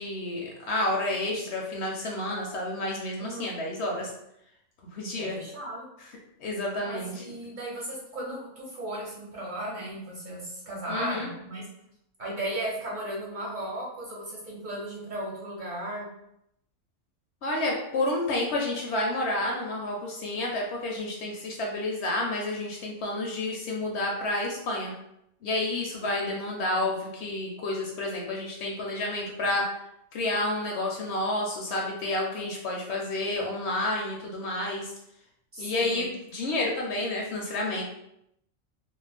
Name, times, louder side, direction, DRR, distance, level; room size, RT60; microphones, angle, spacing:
voice 1, 0.0-4.1 4.9-5.4 6.4-7.2 10.9-11.3 17.4-24.9 25.4-29.7 30.1-34.9 35.6-37.8, left 2 dB, 65° left, -1 dB, 0.8 m, -30 dB
voice 2, 3.2-3.5 5.2-5.9 6.8-11.6 12.2-16.1 25.9-26.3 26.6-26.9 35.5-36.1, right 1 dB, 45° right, -5 dB, 0.8 m, -36 dB
2.4 x 2.1 x 3.3 m, 0.78 s
omnidirectional pair, 1.3 m